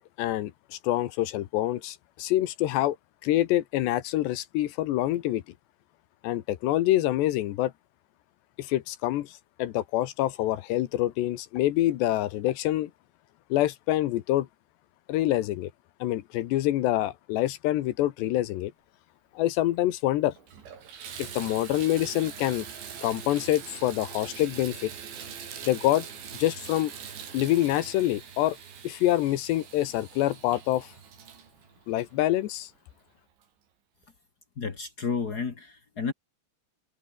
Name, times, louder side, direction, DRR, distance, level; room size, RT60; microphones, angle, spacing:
voice 1, 0.0-3.0 3.2-5.4 6.2-7.7 8.6-12.9 13.5-14.5 15.1-15.7 16.0-18.7 19.4-20.3 21.2-22.7 23.0-24.9 25.6-26.1 26.3-26.9 27.3-28.6 28.8-30.9 31.9-32.7, left 14 dB, 80° left, 3.3 m, -26 dB
Water tap faucet / Bathtub (filling or washing), 19.8-19.9 20.4-32.8 33.4-33.5 34.0-34.1, right 7 dB, 85° right, 6.6 m, -43 dB
voice 2, 34.6-36.1, left 5 dB, 55° left, 1.0 m, -31 dB
omnidirectional pair, 5.1 m